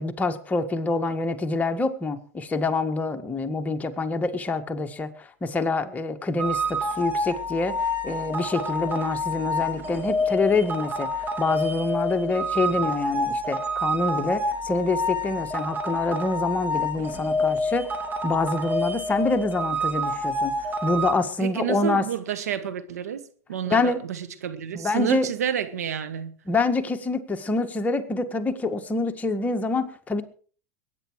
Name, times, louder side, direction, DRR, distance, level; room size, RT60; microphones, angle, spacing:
voice 1, 0.0-17.9 18.2-20.5 20.8-22.1 23.7-24.0 24.7-25.3 26.5-30.2, left 3 dB, 20° left, 1.7 m, -26 dB
sound 1, 6.4-21.1, left 1 dB, 25° right, 2.6 m, -28 dB
voice 2, 21.4-23.2 23.5-26.3, right 9 dB, 90° right, 1.6 m, -29 dB
21.0 x 9.7 x 4.8 m
hypercardioid pair, 105°, 8 cm